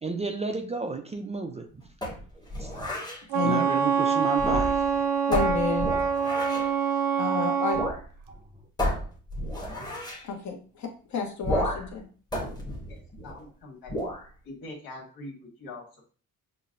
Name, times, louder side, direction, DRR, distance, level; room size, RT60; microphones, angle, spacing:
voice 1, 0.0-1.8 2.6-2.7 3.4-5.1 8.3-8.4, right 4 dB, 20° right, 4 dB, 0.3 m, -32 dB
sound 1, 2.0-3.2 4.3-4.9 5.3-6.7 7.7-8.0 8.3-8.4 8.8-10.2 11.4-12.0 12.3-13.4 13.9-14.3, equal, 10° left, 0.9 m, -31 dB
Wind instrument woodwind instrument, 3.3-7.9, right 6 dB, 90° right, 0.6 m, -25 dB
voice 2, 5.3-5.9 7.2-7.8 10.2-12.1, left 5 dB, 55° left, 3 dB, 0.9 m, -30 dB
voice 3, 12.9-13.9 14.4-16.0, left 2 dB, 80° left, -2 dB, 1.4 m, -43 dB
5.7 x 2.0 x 2.5 m, 0.40 s
cardioid pair, 110°, 34 cm